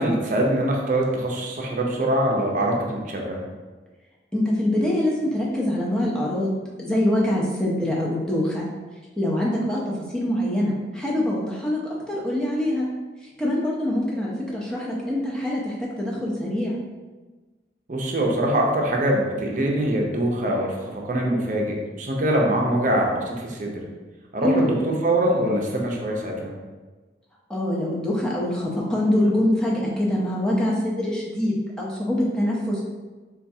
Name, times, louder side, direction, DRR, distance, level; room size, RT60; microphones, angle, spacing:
voice 1, 0.0-3.4 17.9-23.8 24.3-26.5, right 1 dB, 45° right, -1 dB, 0.5 m, -23 dB
voice 2, 4.3-6.5 6.8-8.7 9.2-9.8 10.1-11.8 12.1-12.9 13.4-16.8 24.4-24.7 27.5-32.8, left 1 dB, 5° left, -5 dB, 0.5 m, -24 dB
4.3 x 2.3 x 2.7 m, 1.3 s
head